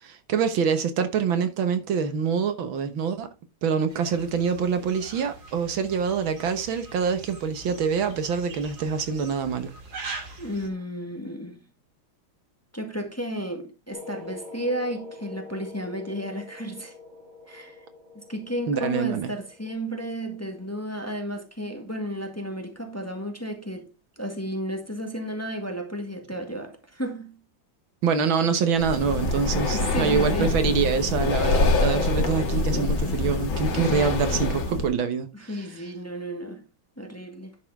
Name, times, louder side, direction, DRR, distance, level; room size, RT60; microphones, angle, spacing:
voice 1, 0.0-3.3 3.6-9.7 18.7-19.3 28.0-35.3, right 6 dB, 75° right, 1.9 m, -25 dB
sound 1, 3.9-10.7, right 3 dB, 50° right, 2.8 m, -42 dB
voice 2, 10.4-11.7 12.7-16.9 17.5-17.8 18.1-23.9 24.2-27.4 29.7-30.5 35.3-36.6 37.0-37.6, equal, 10° left, 1.7 m, -33 dB
sound 2, 13.9-21.0, left 3 dB, 20° right, 2.7 m, -45 dB
Breathing, 28.8-34.9, left 2 dB, 75° left, 2.4 m, -25 dB
10.5 x 6.8 x 3.5 m
omnidirectional pair, 2.2 m